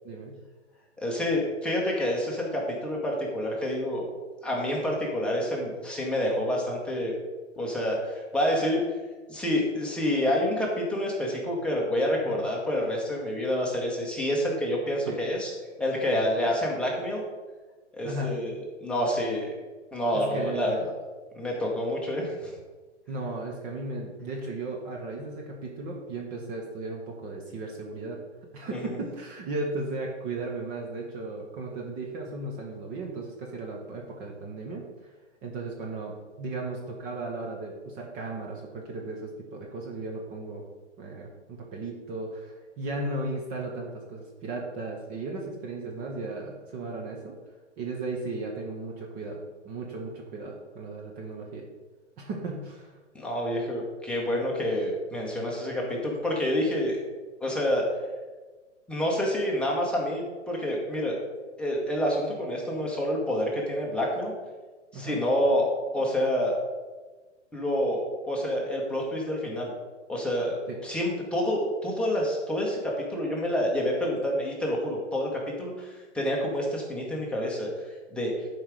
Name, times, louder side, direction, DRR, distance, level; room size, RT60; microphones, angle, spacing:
voice 1, 0.0-0.4 12.2-12.4 15.1-15.2 16.1-16.2 18.0-18.4 20.1-20.9 23.1-28.2 28.5-35.1 35.4-40.6 41.0-47.4 47.8-49.4 49.6-51.6 52.2-53.0 64.9-65.2 70.7-70.8, right 2 dB, 25° right, 0 dB, 1.0 m, -36 dB
voice 2, 1.0-4.0 4.4-7.1 7.6-8.8 9.3-15.5 15.8-17.2 18.0-18.5 18.8-19.5 19.9-20.9 21.3-22.5 28.7-29.0 53.1-57.0 57.4-57.8 58.9-61.2 61.6-64.3 64.9-65.7 65.9-66.6 67.5-69.7 70.1-77.7 78.1-78.3, equal, 5° left, -3 dB, 1.2 m, -28 dB
11.0 x 4.9 x 4.9 m, 1.3 s
figure-of-eight pair, 130°, 37 cm